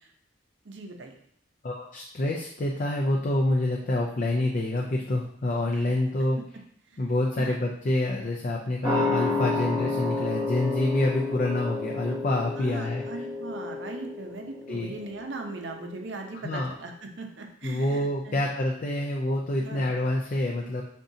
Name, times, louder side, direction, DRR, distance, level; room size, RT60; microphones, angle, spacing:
voice 1, 0.7-1.2 7.4-7.6 12.6-18.5 19.6-19.9, right 3 dB, 60° right, 3 dB, 0.7 m, -39 dB
voice 2, 1.6-6.4 7.0-13.2 14.7-14.9 16.4-16.7 17.6-20.8, left 1 dB, 40° left, -1 dB, 0.5 m, -27 dB
sound 1, 8.8-15.9 16.2-16.3, left 3 dB, 15° right, 0.8 m, -31 dB
5.3 x 3.7 x 2.7 m, 0.67 s
head